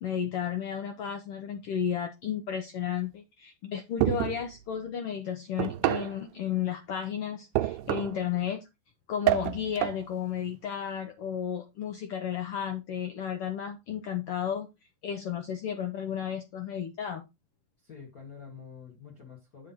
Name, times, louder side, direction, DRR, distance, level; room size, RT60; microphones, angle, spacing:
voice 1, 0.0-8.6 9.1-14.7 15.0-17.3, left 8 dB, 85° left, 1.2 m, -33 dB
sound 1, 4.0-4.5 5.6-6.2 7.6-8.2 9.3-10.0, right 16 dB, 85° right, 2.1 m, -28 dB
voice 2, 7.8-8.3 17.8-19.7, left 6 dB, 35° left, 1.8 m, -48 dB
7.6 x 3.8 x 5.9 m
omnidirectional pair, 3.7 m